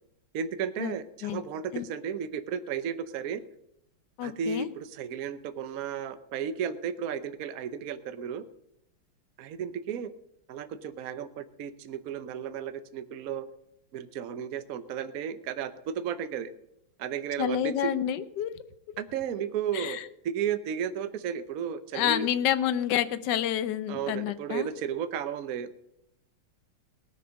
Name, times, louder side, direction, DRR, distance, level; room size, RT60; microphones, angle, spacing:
voice 1, 0.3-3.4 4.2-8.4 9.4-10.1 10.5-13.5 13.9-16.5 17.0-17.9 19.0-22.3 23.9-25.7, right 8 dB, 55° right, 12 dB, 1.0 m, -34 dB
voice 2, 4.2-4.7 17.4-18.5 19.7-20.0 21.9-24.7, left 10 dB, 65° left, 13 dB, 1.3 m, -28 dB
18.5 x 6.9 x 6.3 m, 0.78 s
omnidirectional pair, 2.3 m